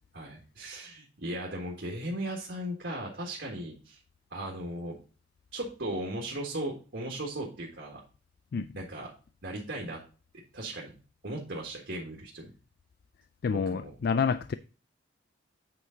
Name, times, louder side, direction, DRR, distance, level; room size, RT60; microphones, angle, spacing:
voice 1, 0.1-4.0 4.3-4.9 5.5-8.0 8.7-9.1 9.4-10.0 10.5-10.9 11.2-12.5 13.6-13.9, right 1 dB, 60° right, 1.6 m, -37 dB
voice 2, 13.4-14.5, left 5 dB, 50° left, 0.3 m, -28 dB
8.1 x 5.0 x 3.8 m
head